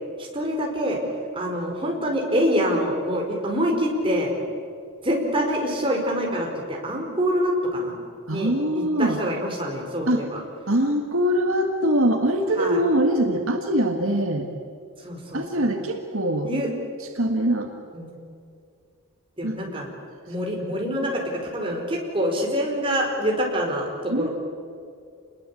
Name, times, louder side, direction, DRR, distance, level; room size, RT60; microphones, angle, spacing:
voice 1, 0.2-1.0 1.3-4.3 5.0-7.9 8.3-10.4 12.6-12.8 15.0-15.7 16.4-16.7 17.9-18.1 19.4-19.9 20.3-23.9 24.1-24.3, equal, 25° right, 0 dB, 4.9 m, -25 dB
voice 2, 8.3-9.2 10.1-10.2 10.7-14.5 15.3-16.5 17.2-17.7 19.4-19.6 20.6-20.8 24.1-24.3, right 1 dB, 70° right, 4 dB, 2.0 m, -23 dB
28.0 x 21.5 x 8.6 m, 2.4 s
head